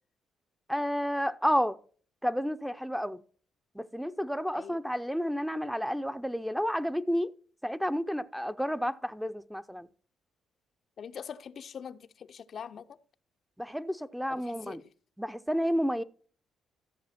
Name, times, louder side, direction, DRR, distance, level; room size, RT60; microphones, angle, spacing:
voice 1, 0.7-1.8 2.2-3.2 3.8-7.3 7.6-9.9 13.6-14.8 15.2-16.0, equal, ahead, 0.5 m, -31 dB
voice 2, 11.0-13.0 14.3-14.8, left 7 dB, 55° left, 0.5 m, -43 dB
14.0 x 6.7 x 4.2 m
cardioid pair, 90°, 0 cm